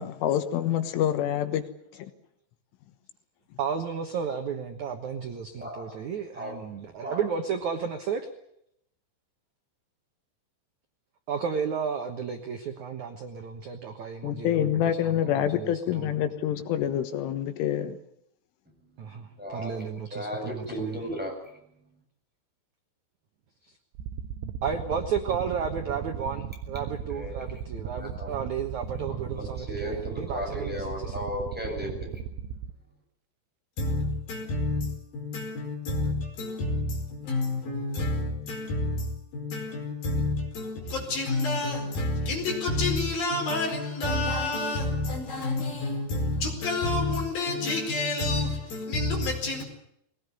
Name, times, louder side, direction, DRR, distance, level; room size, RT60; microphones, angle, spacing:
voice 1, 0.0-1.6 14.2-18.0, left 10 dB, 85° left, 3.9 m, -26 dB
voice 2, 3.6-8.3 11.3-16.2 19.0-21.0 23.7-23.8 24.6-31.2, right 6 dB, 70° right, 1.8 m, -33 dB
voice 3, 5.6-6.0 6.3-6.5 7.0-7.2 19.0-19.8 20.1-21.6 27.1-27.7 27.9-28.3 28.9-32.2, equal, ahead, 7.2 m, -36 dB
sound 1, 24.0-32.7, right 8 dB, 90° right, 3.6 m, -37 dB
voice 4, 33.8-49.6, left 2 dB, 50° left, 6.4 m, -29 dB
22.0 x 18.5 x 9.8 m
omnidirectional pair, 5.5 m